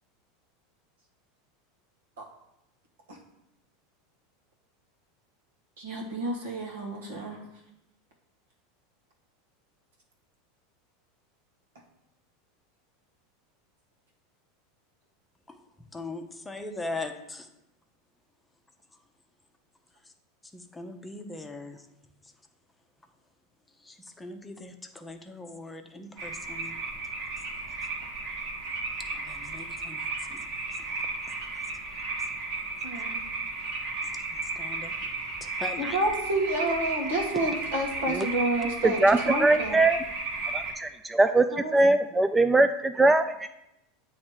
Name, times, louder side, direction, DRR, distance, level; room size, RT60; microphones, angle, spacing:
voice 1, 5.8-7.4 32.8-33.2 35.9-39.8 41.5-41.8, right 1 dB, 80° right, 0 dB, 1.5 m, -29 dB
voice 2, 15.9-17.5 20.5-21.9 23.8-26.8 29.1-30.4 30.8-30.9 34.3-35.1 35.4-36.0, left 2 dB, 10° left, 5 dB, 0.8 m, -40 dB
sound 1, 26.2-40.7, right 3 dB, 60° right, 1.7 m, -34 dB
voice 3, 38.8-40.0 40.5-43.5, right 2 dB, 10° right, 9 dB, 0.3 m, -22 dB
8.5 x 3.2 x 4.6 m, 0.87 s
hypercardioid pair, 95°, 0 cm